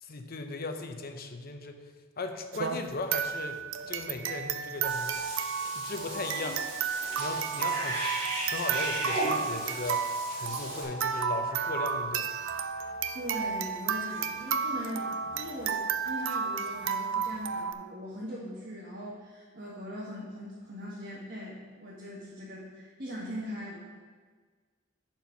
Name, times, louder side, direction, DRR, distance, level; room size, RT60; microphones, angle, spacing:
voice 1, 0.0-1.8 2.2-3.6 3.9-12.3, left 3 dB, 50° left, 6 dB, 0.8 m, -38 dB
sound 1, 2.5-17.7, right 6 dB, 75° right, 0.5 m, -32 dB
Cat / Bathtub (filling or washing), 4.8-10.8, right 1 dB, 30° right, 2.8 m, -36 dB
voice 2, 13.1-23.8, equal, 50° right, -7 dB, 1.6 m, -40 dB
9.2 x 4.5 x 5.8 m, 1.5 s
head